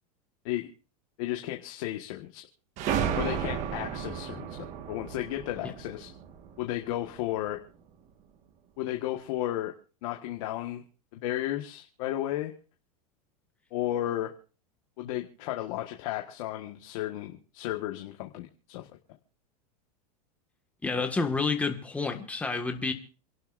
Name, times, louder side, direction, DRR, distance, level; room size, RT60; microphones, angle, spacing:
voice 1, 1.2-2.4 3.1-6.1 6.6-7.6 8.8-9.7 10.0-10.9 11.1-12.5 13.7-14.3 15.0-18.9, left 14 dB, 60° left, 3 dB, 1.6 m, -33 dB
sound 1, 2.8-7.2, right 8 dB, 40° right, 1.6 m, -33 dB
voice 2, 20.8-22.9, left 4 dB, 5° left, 4 dB, 1.7 m, -29 dB
28.5 x 11.5 x 2.6 m, 0.37 s
supercardioid pair, 150°, 19 cm